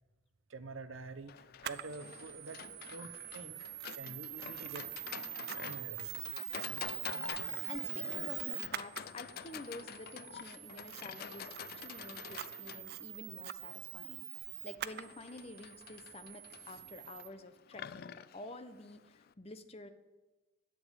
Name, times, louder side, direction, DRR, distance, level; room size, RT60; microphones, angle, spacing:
voice 1, 0.5-2.6 2.9-4.9 5.6-6.3, right 3 dB, 75° right, 12 dB, 0.8 m, -48 dB
Livestock farm animals working animals, 1.3-19.3, left 8 dB, 45° left, 0.3 m, -48 dB
Camera, 1.6-17.3, right 15 dB, 50° right, 0.5 m, -44 dB
voice 2, 7.4-19.9, left 2 dB, 30° left, 9 dB, 0.9 m, -49 dB
11.0 x 7.9 x 9.2 m, 1.2 s
head